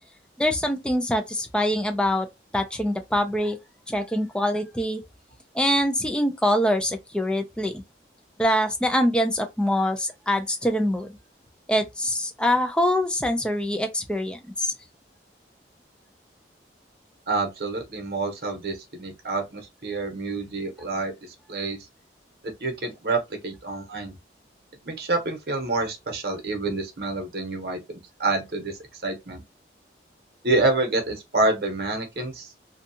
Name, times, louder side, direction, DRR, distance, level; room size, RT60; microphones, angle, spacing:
voice 1, 0.4-2.3 2.5-3.6 3.9-5.0 5.5-7.8 8.4-11.1 11.7-14.7, equal, 5° left, 0.4 m, -24 dB
voice 2, 17.3-21.8 22.4-24.2 24.8-29.4 30.4-32.5, right 2 dB, 60° right, 0.9 m, -28 dB
2.6 x 2.3 x 2.7 m
head